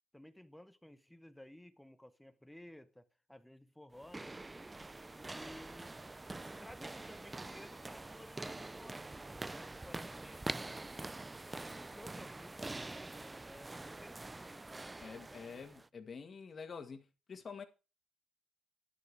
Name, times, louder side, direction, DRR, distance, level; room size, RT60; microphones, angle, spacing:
voice 1, 0.1-4.4 5.1-6.0 6.6-10.4 11.7-14.7, left 1 dB, 5° left, 0.9 m, -56 dB
sound 1, 3.9-15.9, right 2 dB, 15° right, 0.5 m, -45 dB
voice 2, 15.0-17.6, left 5 dB, 40° left, 1.9 m, -47 dB
11.0 x 8.4 x 4.8 m
cardioid pair, 90°, 0 cm